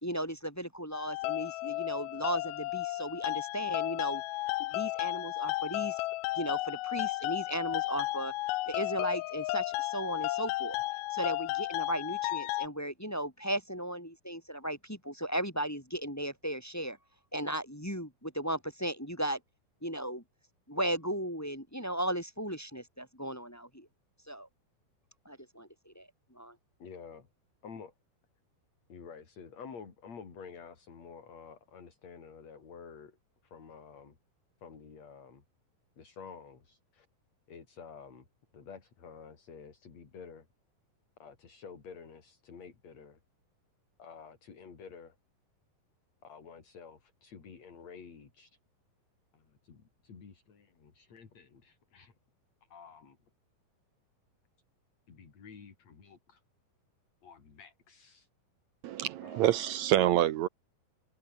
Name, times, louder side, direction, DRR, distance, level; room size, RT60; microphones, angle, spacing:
voice 1, 0.0-4.2 4.6-6.0 6.4-8.3 8.7-10.8 11.1-17.0 17.3-19.4 19.8-20.2 20.7-23.9 24.3-24.5 25.2-26.5, right 1 dB, 5° left, 1.9 m, -36 dB
sound 1, 0.9-12.7, left 19 dB, 85° left, 2.6 m, -33 dB
voice 2, 26.8-27.3 27.6-27.9 28.9-33.2 33.4-34.2 34.6-35.4 36.0-37.1 37.5-38.3 38.5-40.5 41.2-43.2 44.0-45.2 46.2-48.6 49.3-52.1 52.7-53.2 55.1-56.4 57.2-58.3 59.2-59.5, left 6 dB, 45° left, 4.7 m, -50 dB
voice 3, 58.8-60.5, right 12 dB, 75° right, 1.7 m, -27 dB
omnidirectional pair, 4.2 m